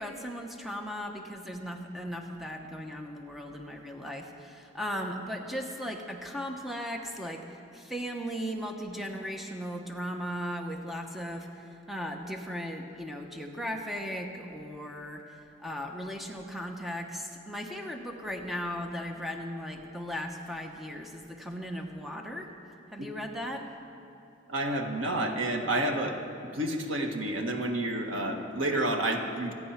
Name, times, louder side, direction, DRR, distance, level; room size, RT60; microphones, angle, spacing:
voice 1, 0.0-22.5 22.9-23.7, equal, ahead, 2 dB, 1.0 m, -37 dB
voice 2, 24.5-26.2 26.5-29.5, right 1 dB, 80° right, 3 dB, 1.6 m, -29 dB
26.5 x 9.3 x 5.8 m, 2.8 s
head